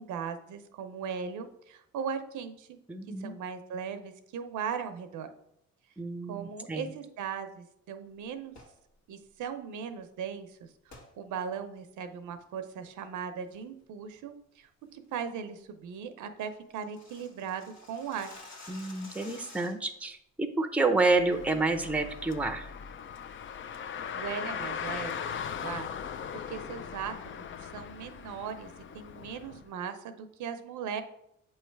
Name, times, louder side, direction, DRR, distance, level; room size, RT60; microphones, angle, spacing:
voice 1, 0.0-2.8 3.2-5.3 6.3-8.6 9.1-18.3 24.2-25.1 25.5-31.0, right 7 dB, 80° right, 9 dB, 0.7 m, -38 dB
voice 2, 2.9-3.3 6.0-6.9 18.7-22.7, right 3 dB, 5° right, 6 dB, 0.6 m, -29 dB
sound 1, 8.5-8.8 10.9-11.1 11.6-11.7 12.2-12.5 12.8-13.2 13.5-13.8 14.1-14.2 14.6-14.9 15.2-15.3 15.7-15.8 15.9-16.0 16.3-20.0, left 3 dB, 65° left, 1.6 m, -51 dB
Car, 21.1-29.6, left 7 dB, 40° left, 0.4 m, -39 dB
7.7 x 3.2 x 4.5 m, 0.77 s
cardioid pair, 90°, 30 cm